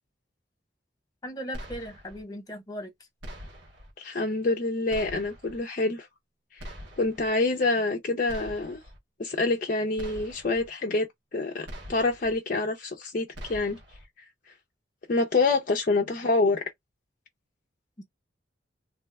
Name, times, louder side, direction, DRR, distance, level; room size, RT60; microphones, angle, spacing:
voice 1, 1.2-2.9 18.0-18.1, equal, 20° left, 1.0 m, -38 dB
sound 1, 1.5-2.2 3.2-3.9 4.9-5.6 6.6-7.3 8.3-9.0 10.0-10.7 11.7-12.4 13.3-14.0, equal, 80° right, 1.0 m, -43 dB
voice 2, 4.0-6.1 6.5-6.7 7.0-8.8 9.2-11.1 11.3-13.8 15.1-16.6, left 3 dB, 45° left, 0.5 m, -26 dB
2.7 x 2.2 x 3.4 m
head